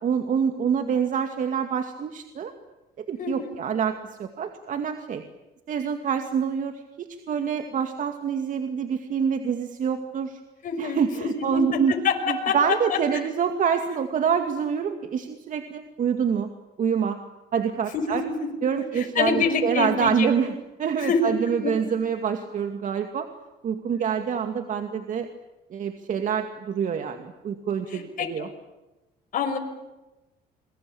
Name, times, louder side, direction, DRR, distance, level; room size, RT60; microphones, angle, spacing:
voice 1, 0.0-2.5 3.0-5.2 5.7-10.4 10.8-11.9 12.3-16.5 16.8-17.2 17.5-18.2 18.6-20.5 20.8-23.3 23.6-25.3 25.7-28.5, right 7 dB, 50° right, 6 dB, 2.3 m, -26 dB
voice 2, 3.2-3.6 10.6-11.6 11.9-13.0 17.9-18.3 18.9-20.3 21.0-21.3 21.6-21.7 27.9-28.5 29.3-29.6, left 5 dB, 50° left, 3 dB, 5.9 m, -26 dB
27.5 x 22.5 x 8.7 m, 1.0 s
cardioid pair, 110°, 17 cm